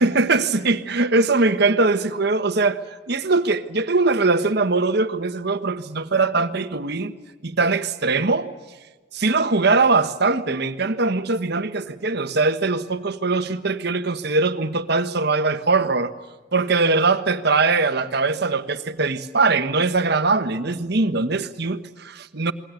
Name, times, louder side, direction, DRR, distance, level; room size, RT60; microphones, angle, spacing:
voice 1, 0.0-2.8 3.1-7.1 7.4-8.5 9.1-16.1 16.5-22.5, right 3 dB, 60° right, 1.3 m, -21 dB
28.0 x 21.5 x 8.3 m
head